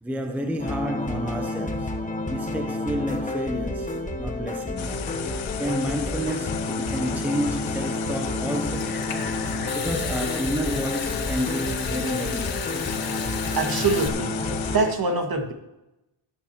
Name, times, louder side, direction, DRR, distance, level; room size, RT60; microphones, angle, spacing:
voice 1, 0.0-1.9 2.3-5.0 5.3-9.0 9.7-12.7, equal, 5° right, 0.7 m, -30 dB
sound 1, 0.6-14.9, left 2 dB, 15° left, 1.2 m, -30 dB
sound 2, 4.8-14.8, left 10 dB, 70° left, 0.8 m, -34 dB
Water tap faucet / Sink (filling or washing) / Trickle dribble, 8.5-14.1, left 5 dB, 50° left, 1.6 m, -35 dB
voice 2, 13.6-14.3 14.7-15.5, right 3 dB, 45° right, 2.0 m, -24 dB
18.5 x 9.4 x 2.9 m
wide cardioid pair, 125°, 48 cm